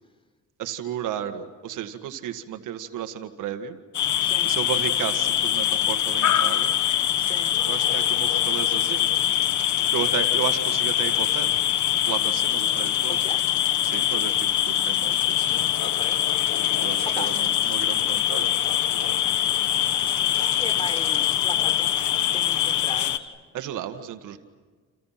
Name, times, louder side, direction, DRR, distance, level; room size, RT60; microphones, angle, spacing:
voice 1, 0.6-3.8 4.4-6.8 7.7-9.2 9.9-11.5 12.0-13.3 13.8-15.6 16.8-18.6 23.5-24.4, right 10 dB, 85° right, 7 dB, 1.9 m, -33 dB
sound 1, 3.9-23.2, left 11 dB, 75° left, 1.5 m, -23 dB
voice 2, 4.2-4.6 7.2-7.6 13.1-13.4 15.8-16.4 16.8-17.8 19.3-21.9 22.3-23.3, left 1 dB, 15° left, 8 dB, 4.0 m, -39 dB
30.0 x 29.5 x 5.9 m, 1.4 s
cardioid pair, 90°, 30 cm